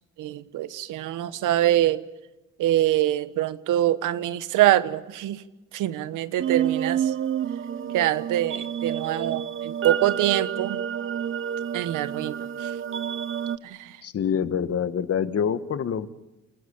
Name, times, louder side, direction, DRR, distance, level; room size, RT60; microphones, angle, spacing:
voice 1, 0.2-2.0 2.6-5.4 5.7-7.1 7.9-10.8 11.7-12.7 13.6-13.9, right 13 dB, 90° right, 15 dB, 1.1 m, -24 dB
sound 1, 6.4-13.6, right 9 dB, 45° right, 0.8 m, -29 dB
voice 2, 14.0-16.1, left 7 dB, 50° left, 13 dB, 1.3 m, -26 dB
28.0 x 14.5 x 8.6 m, 1.1 s
cardioid pair, 90°, 30 cm